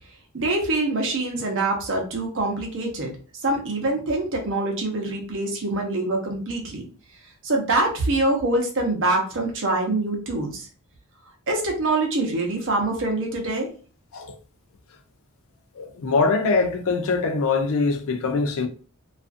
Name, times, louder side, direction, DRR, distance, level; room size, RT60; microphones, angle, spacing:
voice 1, 0.3-3.1 3.4-6.8 7.4-10.7 11.5-13.7, right 2 dB, 60° right, 0.8 m, -24 dB
voice 2, 15.8-18.7, left 4 dB, 65° left, 0.4 m, -23 dB
2.4 x 2.4 x 2.4 m
head